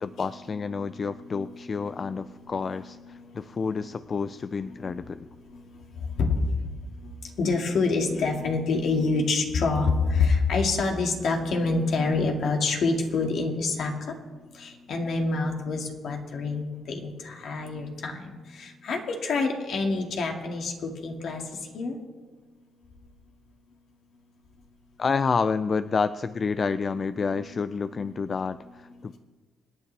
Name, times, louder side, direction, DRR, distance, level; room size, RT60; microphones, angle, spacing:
voice 1, 0.0-5.3 25.0-29.2, left 5 dB, 40° left, 13 dB, 0.4 m, -29 dB
voice 2, 0.8-2.1 2.6-2.8 3.1-3.2 3.8-3.9 4.6-4.9 5.5-5.6 6.0-6.3 7.4-14.1 14.5-21.4 21.7-22.0 27.5-27.6 27.9-28.1, left 3 dB, 65° left, 2 dB, 2.1 m, -27 dB
25.5 x 9.4 x 3.4 m, 1.4 s
cardioid pair, 90°, 0 cm